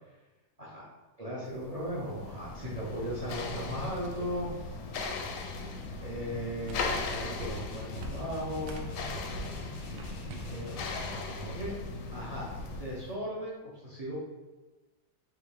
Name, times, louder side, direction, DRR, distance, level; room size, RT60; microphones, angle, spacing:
voice 1, 1.2-4.5 6.0-8.9 10.5-11.7 12.1-14.2, equal, 50° right, -6 dB, 0.4 m, -37 dB
sound 1, 1.6-13.1, left 3 dB, 70° left, 0.8 m, -38 dB
sound 2, 6.5-12.1, right 1 dB, 90° right, 1.3 m, -45 dB
sound 3, 7.5-11.0, left 3 dB, 90° left, 1.4 m, -47 dB
3.7 x 2.7 x 4.6 m, 1.2 s
omnidirectional pair, 1.8 m